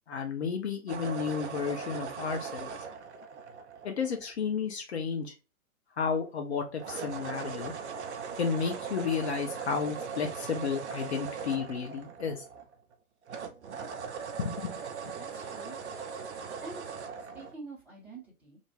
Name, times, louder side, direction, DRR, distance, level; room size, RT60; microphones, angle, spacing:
voice 1, 0.1-2.7 3.8-5.3 6.0-7.7 8.4-12.4 14.4-14.7 15.0-15.1, left 6 dB, 50° left, 3 dB, 0.6 m, -32 dB
sound 1, 0.9-4.3 6.8-12.9 13.3-17.5, right 6 dB, 55° right, 0.5 m, -39 dB
voice 2, 15.2-15.8 16.3-18.6, right 3 dB, 5° right, -8 dB, 0.7 m, -47 dB
2.5 x 2.3 x 2.9 m, 0.33 s
figure-of-eight pair, 120°, 43 cm